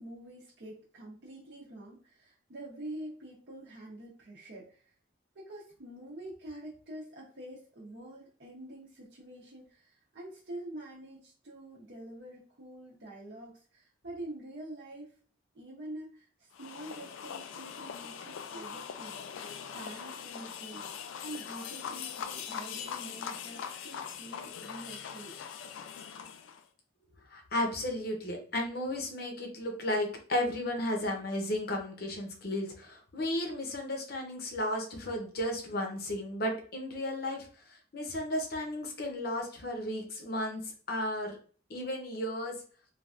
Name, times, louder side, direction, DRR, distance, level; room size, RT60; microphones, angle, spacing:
voice 1, 0.0-4.8 5.3-15.1 15.5-20.9 21.2-25.3, right 1 dB, 60° right, -6 dB, 0.7 m, -46 dB
sound 1, 16.5-26.6, left 7 dB, 85° left, 0.3 m, -41 dB
voice 2, 27.3-37.5 37.9-40.6 40.9-41.4 41.7-42.5, left 1 dB, 50° left, 2 dB, 0.7 m, -34 dB
3.2 x 2.3 x 2.4 m, 0.42 s
head